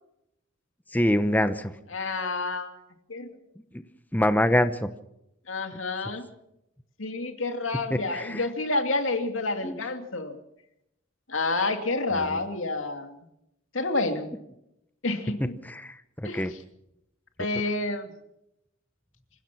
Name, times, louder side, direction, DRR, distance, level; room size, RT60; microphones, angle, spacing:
voice 1, 0.9-1.7 3.7-3.8 4.1-4.9 7.7-8.5 9.6-9.8 12.2-12.4 15.4-16.5, left 1 dB, 10° left, 10 dB, 0.9 m, -25 dB
voice 2, 1.9-2.7 3.1-3.3 5.5-6.3 7.0-10.4 11.3-13.1 13.7-14.3 15.0-15.5 16.2-16.4 17.4-18.1, left 2 dB, 70° left, 6 dB, 2.7 m, -29 dB
26.5 x 16.5 x 6.0 m, 0.81 s
head